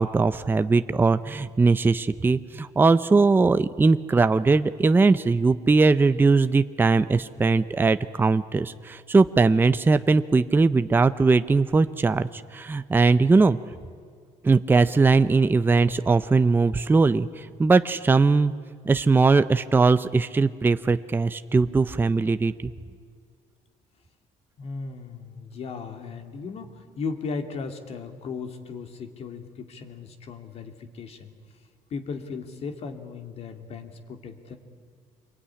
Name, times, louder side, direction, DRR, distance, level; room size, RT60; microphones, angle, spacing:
voice 1, 0.0-13.6 14.4-18.5 18.9-22.5, right 4 dB, 15° right, 12 dB, 0.6 m, -20 dB
voice 2, 24.6-31.3 31.9-34.6, left 4 dB, 50° left, 6 dB, 2.7 m, -36 dB
27.0 x 22.5 x 9.9 m, 2.1 s
cardioid pair, 125°, 14 cm